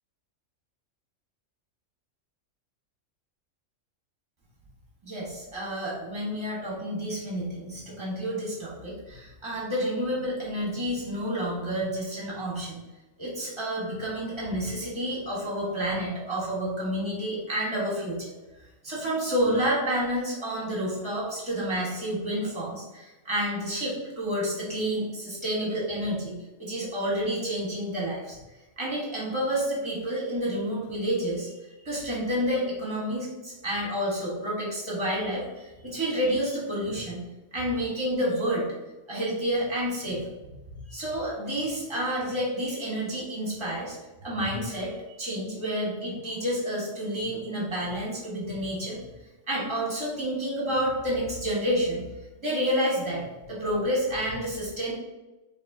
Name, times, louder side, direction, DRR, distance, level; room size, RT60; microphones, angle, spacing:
voice 1, 5.0-12.8 13.2-18.3 18.8-28.4 28.8-31.5 31.8-37.2 37.5-38.7 39.1-40.5 40.9-49.0 49.5-52.0 52.4-54.9, equal, 25° right, -5 dB, 1.2 m, -29 dB
5.2 x 2.6 x 2.7 m, 1.1 s
omnidirectional pair, 1.4 m